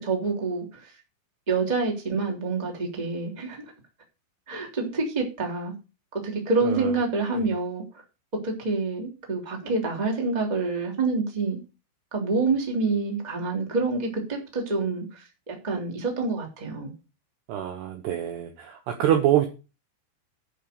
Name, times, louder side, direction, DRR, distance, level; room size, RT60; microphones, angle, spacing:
voice 1, 0.0-0.9 1.5-3.6 4.5-5.7 6.1-8.0 8.4-11.6 12.1-16.9, right 3 dB, 10° right, 1 dB, 2.0 m, -27 dB
voice 2, 17.5-19.5, right 11 dB, 70° right, 5 dB, 2.6 m, -25 dB
11.5 x 5.5 x 6.8 m, 0.31 s
omnidirectional pair, 6.0 m